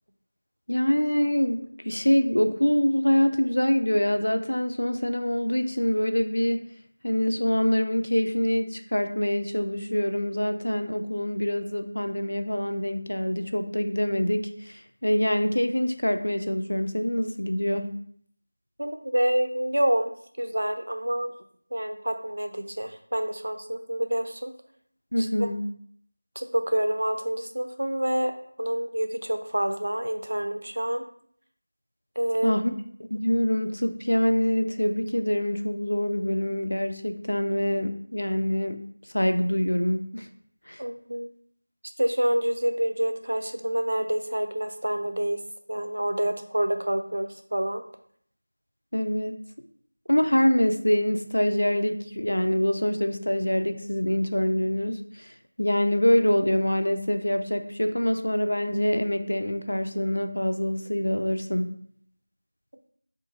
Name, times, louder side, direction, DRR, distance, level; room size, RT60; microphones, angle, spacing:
voice 1, 0.7-6.6 7.0-17.9 25.1-25.6 32.4-32.7 33.1-38.8 39.1-40.3 40.7-40.8 48.9-49.4 50.1-55.3 55.6-61.7, left 1 dB, 65° left, 7 dB, 0.3 m, -25 dB
voice 2, 18.8-20.1 20.4-21.3 21.7-24.5 25.2-25.5 26.4-31.1 32.2-32.6 40.8-41.3 42.0-45.4 45.7-47.8, right 1 dB, 55° right, 6 dB, 0.3 m, -27 dB
2.7 x 2.4 x 2.8 m, 0.63 s
figure-of-eight pair, 175°, 0 cm